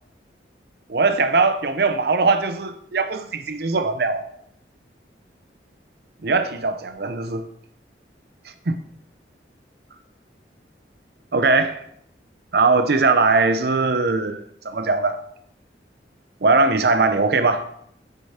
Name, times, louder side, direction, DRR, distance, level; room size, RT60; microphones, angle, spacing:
voice 1, 0.9-4.2 6.2-7.4 8.7-8.8 11.3-11.8 12.5-14.4 14.6-15.2 16.4-17.7, right 3 dB, 60° right, 0.6 m, -20 dB
8.2 x 6.9 x 4.2 m
head